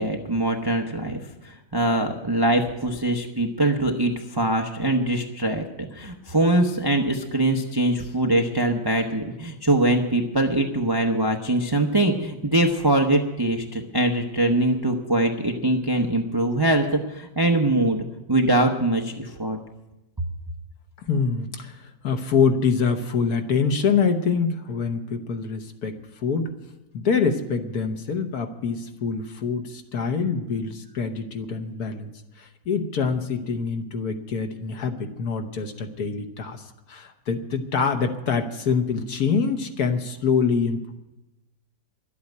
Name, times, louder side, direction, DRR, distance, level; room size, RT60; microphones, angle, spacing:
voice 1, 0.0-19.6, right 1 dB, 30° right, 3 dB, 0.4 m, -23 dB
voice 2, 21.0-26.5 26.9-32.1 32.4-40.9, left 5 dB, 60° left, 6 dB, 1.4 m, -25 dB
12.0 x 8.6 x 9.4 m, 0.98 s
omnidirectional pair, 2.0 m